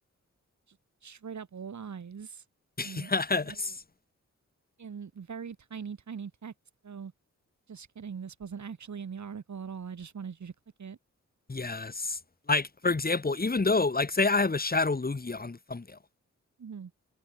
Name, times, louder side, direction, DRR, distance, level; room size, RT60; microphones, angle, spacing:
voice 1, 0.7-2.5 2.8-3.1 3.4-3.8 4.8-6.5 6.8-7.1 7.7-10.5 10.8-11.0 12.9-13.0 16.6-16.9, right 6 dB, 75° right, 7.0 m, -41 dB
voice 2, 2.8-3.7 11.5-12.2 12.5-16.0, left 3 dB, 30° left, 3.3 m, -28 dB
wide cardioid pair, 130°, 29 cm